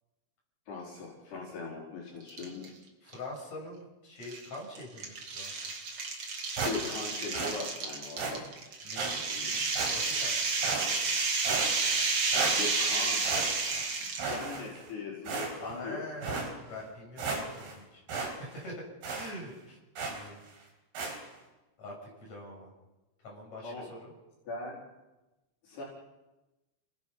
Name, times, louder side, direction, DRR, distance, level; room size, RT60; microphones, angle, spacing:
voice 1, 0.7-2.7 6.6-8.4 9.3-9.6 12.6-13.2 14.0-16.3 23.6-23.9 24.5-24.8 25.6-25.9, left 3 dB, 75° left, -4 dB, 6.5 m, -40 dB
sound 1, 2.3-2.7 3.1-3.2 4.2-14.4, right 4 dB, 40° right, 2.6 m, -31 dB
voice 2, 3.0-5.6 8.8-10.4 15.6-18.8 19.1-20.4 21.8-22.7 23.2-24.1, left 1 dB, 40° left, -3 dB, 8.0 m, -44 dB
sound 2, 6.6-7.1 7.3-7.6 8.2-8.4 9.0-9.1 9.8-10.2 10.6-11.1 11.5-12.1 12.3-12.9 13.2-13.9 14.2-14.9 15.3-15.8 16.2-16.5 16.9-17.0 17.2-17.8 18.1-18.3 18.6-18.7 19.0-19.3 20.0-20.3 21.0-21.2, right 4 dB, 70° right, 6.2 m, -34 dB
29.5 x 19.5 x 5.6 m, 1.1 s
omnidirectional pair, 4.7 m